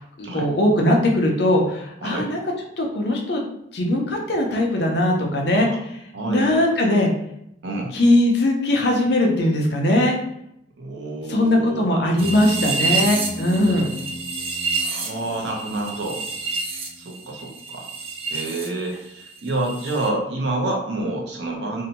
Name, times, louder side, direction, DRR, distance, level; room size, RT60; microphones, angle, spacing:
voice 1, 0.2-2.4 2.8-3.4 3.7-6.0 6.3-7.1 7.9-10.1 11.3-13.9, left 1 dB, 60° left, 0 dB, 0.5 m, -20 dB
voice 2, 6.1-6.8 7.6-7.9 10.8-11.8 14.8-16.2 17.0-17.9 18.3-21.9, right 2 dB, 65° right, 0 dB, 0.6 m, -28 dB
sound 1, 12.2-18.7 18.9-20.1, right 3 dB, 30° right, 0.3 m, -28 dB
2.7 x 2.1 x 2.8 m, 0.79 s
head